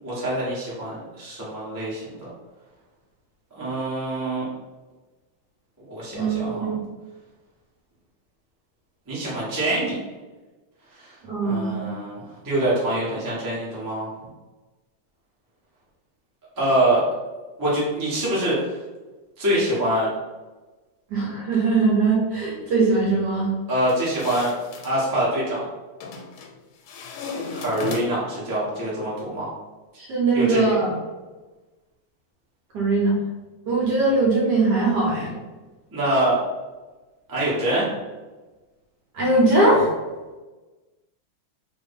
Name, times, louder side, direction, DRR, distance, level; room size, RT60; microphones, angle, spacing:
voice 1, 0.0-2.3 3.6-4.4 5.9-6.7 9.1-10.0 10.9-11.2 11.4-14.1 16.6-17.0 17.6-18.6 19.4-20.1 23.7-24.5 24.8-25.6 27.5-29.5 30.3-30.7 35.9-36.4 37.3-37.9, right 1 dB, 20° right, -7 dB, 0.6 m, -25 dB
voice 2, 6.2-6.8 11.3-11.9 21.1-23.5 30.0-30.9 32.7-33.1 33.7-35.4 39.1-39.9, right 3 dB, 65° right, -4 dB, 1.2 m, -21 dB
sound 1, 23.8-25.0 26.0-26.5 26.9-28.4, left 4 dB, 85° left, 1.4 m, -35 dB
3.1 x 2.6 x 3.5 m, 1.2 s
omnidirectional pair, 2.2 m